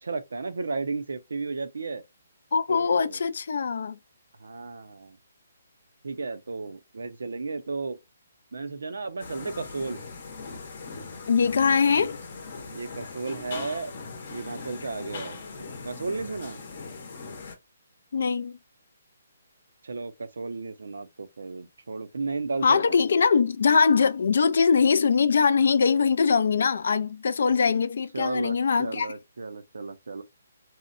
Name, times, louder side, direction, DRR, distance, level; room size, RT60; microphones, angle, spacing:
voice 1, 0.0-2.0 2.7-3.3 4.4-5.2 6.0-8.0 8.5-10.0 12.7-13.9 14.3-15.4 15.8-16.6 19.8-23.0 28.1-30.2, right 3 dB, 85° right, 0.5 m, -34 dB
voice 2, 2.5-4.0 11.3-12.2 18.1-18.6 22.6-29.1, left 5 dB, 65° left, 0.3 m, -22 dB
sound 1, 9.2-17.6, left 4 dB, 50° left, 0.7 m, -40 dB
2.8 x 2.1 x 2.4 m
hypercardioid pair, 160°, 0 cm